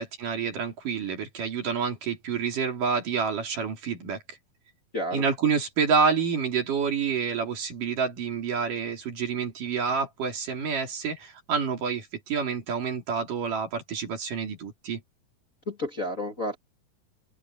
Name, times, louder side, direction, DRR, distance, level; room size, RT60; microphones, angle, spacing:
voice 1, 0.0-4.2 5.1-15.0, right 6 dB, 60° right, 4.9 m, -28 dB
voice 2, 15.7-16.6, left 1 dB, 25° left, 2.1 m, -31 dB
open air
omnidirectional pair, 4.2 m